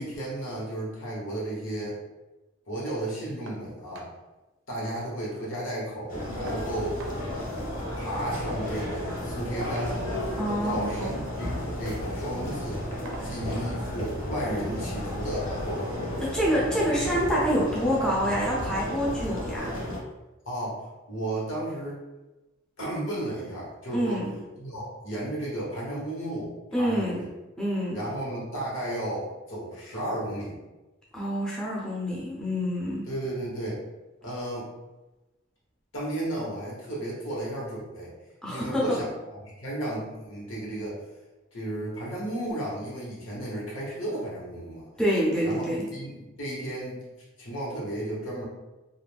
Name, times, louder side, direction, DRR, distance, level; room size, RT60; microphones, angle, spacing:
voice 1, 0.0-2.0 2.7-4.1 4.7-7.0 8.0-10.0 10.6-12.8 13.2-15.9 20.4-22.0 22.8-24.2 24.6-27.3 27.9-30.6 33.0-33.8 34.2-34.7 35.9-38.1 38.5-41.0 41.5-44.9 45.4-45.6 45.9-47.0 47.4-48.4, right 1 dB, 75° left, -5 dB, 1.1 m, -33 dB
sound 1, 3.5-3.7 3.9-4.2 4.5-4.6 4.9-5.6 6.5-7.2 8.4-8.6 9.6-10.3 11.3-11.6 12.1-12.3 13.1-13.4 14.6-14.7 15.2-15.3, right 2 dB, 80° right, 0.4 m, -45 dB
sound 2, 6.1-20.0, left 1 dB, 45° left, 0.9 m, -33 dB
voice 2, 10.4-11.1 13.1-13.3 16.3-19.7 23.9-24.3 26.7-27.2 27.6-28.0 31.1-33.1 38.4-39.0 45.0-45.9, equal, 5° left, -6 dB, 0.5 m, -27 dB
2.4 x 2.1 x 3.3 m, 1.1 s
head